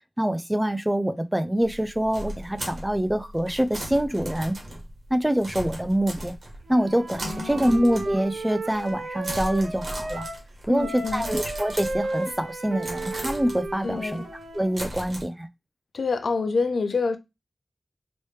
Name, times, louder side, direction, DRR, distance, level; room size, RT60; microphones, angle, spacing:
voice 1, 0.2-4.6 5.1-6.3 6.7-10.3 10.6-14.2 14.5-15.5, right 1 dB, 10° right, 0.4 m, -25 dB
sound 1, 1.6-6.7 7.1-8.4 8.7-9.0 9.2-12.4 12.8-15.2, right 1 dB, 60° right, 1.2 m, -37 dB
Wind instrument woodwind instrument, 6.7-10.4 10.7-14.8, right 2 dB, 80° right, 0.8 m, -34 dB
voice 2, 7.2-7.8 10.7-11.3 13.8-14.3 15.9-17.2, left 4 dB, 85° left, 0.4 m, -27 dB
3.0 x 3.0 x 3.2 m
wide cardioid pair, 85°, 0 cm